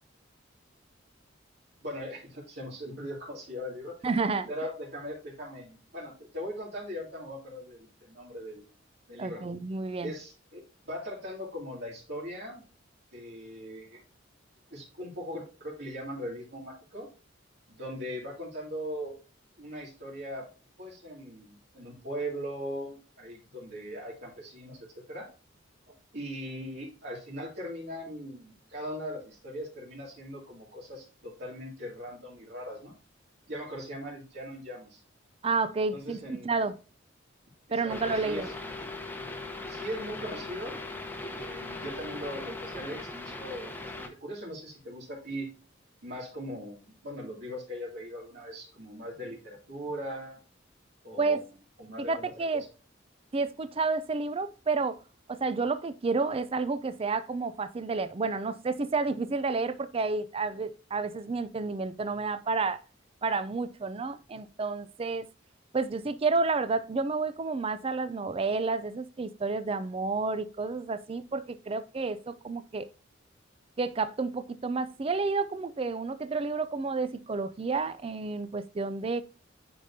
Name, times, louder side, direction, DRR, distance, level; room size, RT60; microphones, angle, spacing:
voice 1, 1.8-3.9 4.5-8.7 9.1-9.4 10.0-12.6 13.1-14.0 14.7-17.1 17.7-19.1 19.6-20.5 20.8-25.3 25.9-32.9 33.5-35.0 35.9-36.6 37.8-38.5 39.7-40.8 41.3-45.5 46.0-50.4 51.0-51.4 51.8-52.3, equal, 65° right, 2.5 m, -40 dB
voice 2, 4.0-4.5 9.2-10.1 35.4-36.8 37.7-38.5 51.2-51.4 52.1-52.6 53.3-55.0 55.3-62.8 63.2-65.3 65.7-72.9 73.8-79.2, right 4 dB, 30° right, 0.4 m, -30 dB
sound 1, 37.9-44.1, left 2 dB, 10° left, 0.9 m, -39 dB
9.7 x 5.2 x 2.7 m
head